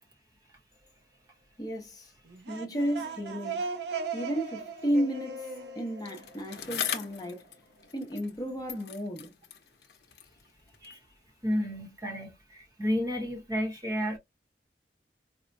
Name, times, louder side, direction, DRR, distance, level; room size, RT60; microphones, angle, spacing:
voice 1, 1.6-2.1 2.5-3.6 4.1-5.5 5.8-7.5 7.9-9.3, equal, 20° left, 0.7 m, -33 dB
sound 1, 2.3-7.0, right 4 dB, 70° right, 0.7 m, -38 dB
Bicycle, 6.0-8.4 8.7-11.1 11.8-11.9, left 9 dB, 65° left, 0.6 m, -40 dB
voice 2, 11.4-14.2, equal, 20° right, 0.8 m, -31 dB
4.2 x 2.1 x 2.5 m
head